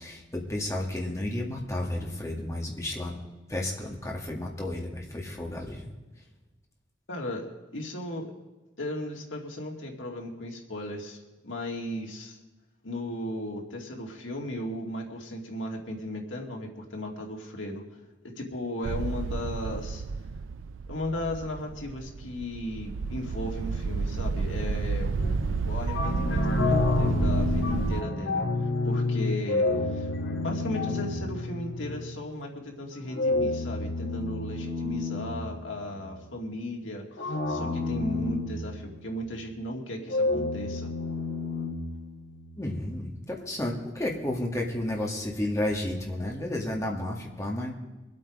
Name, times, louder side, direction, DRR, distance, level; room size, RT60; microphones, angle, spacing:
voice 1, 0.0-3.2 3.5-5.9 42.6-47.7, left 1 dB, 15° left, -1 dB, 2.1 m, -32 dB
voice 2, 7.1-7.5 7.7-8.3 8.8-11.2 11.4-12.4 12.8-17.8 18.2-20.0 20.9-25.1 25.6-28.4 28.8-30.1 30.4-40.9, left 1 dB, 85° left, 1 dB, 2.4 m, -36 dB
sound 1, 18.8-28.0, right 4 dB, 90° right, 0.4 m, -31 dB
sound 2, 25.2-32.2 33.1-36.1 37.2-39.3 40.1-42.5, left 2 dB, 70° left, 1.8 m, -29 dB
23.5 x 8.4 x 5.1 m, 1.2 s
head